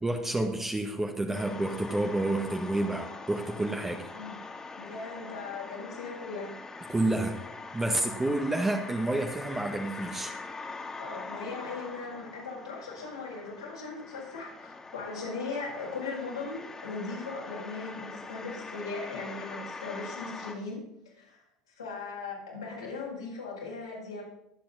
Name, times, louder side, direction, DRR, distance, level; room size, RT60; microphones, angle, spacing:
voice 1, 0.0-4.1 6.9-7.4 7.7-10.3, right 2 dB, 15° right, 2 dB, 1.8 m, -29 dB
sound 1, 1.3-20.5, left 3 dB, 20° left, 2.9 m, -43 dB
voice 2, 4.8-6.5 11.0-20.8 21.1-21.4 21.7-24.2, left 4 dB, 85° left, -5 dB, 7.0 m, -38 dB
23.5 x 8.7 x 4.2 m, 0.84 s
hypercardioid pair, 70°, 3 cm